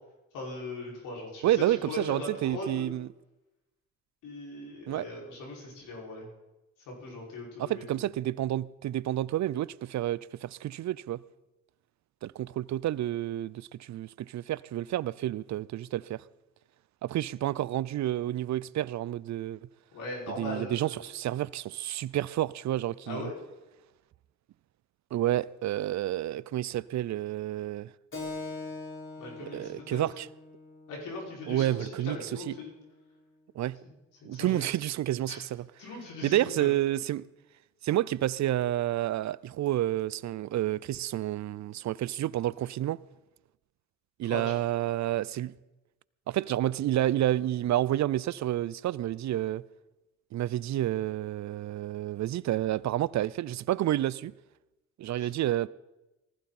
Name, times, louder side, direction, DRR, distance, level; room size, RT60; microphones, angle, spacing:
voice 1, 0.3-2.9 4.2-6.3 6.9-7.8 19.9-21.0 23.1-23.3 29.2-30.0 30.9-32.7 34.2-34.6 35.3-35.4 35.8-36.7 44.2-44.6 55.2-55.3, left 2 dB, 75° left, 5.8 m, -39 dB
voice 2, 1.4-3.1 4.9-5.1 7.6-11.2 12.2-16.2 17.0-19.7 20.3-23.3 25.1-27.9 29.5-30.3 31.5-32.5 33.5-33.8 34.2-35.7 36.2-37.3 37.8-43.0 44.2-45.5 46.3-49.6 50.3-54.3 55.0-55.7, right 13 dB, 60° right, 0.6 m, -30 dB
Keyboard (musical), 28.1-33.2, left 3 dB, 40° left, 5.1 m, -43 dB
19.0 x 15.5 x 4.3 m
hypercardioid pair, 50°, 32 cm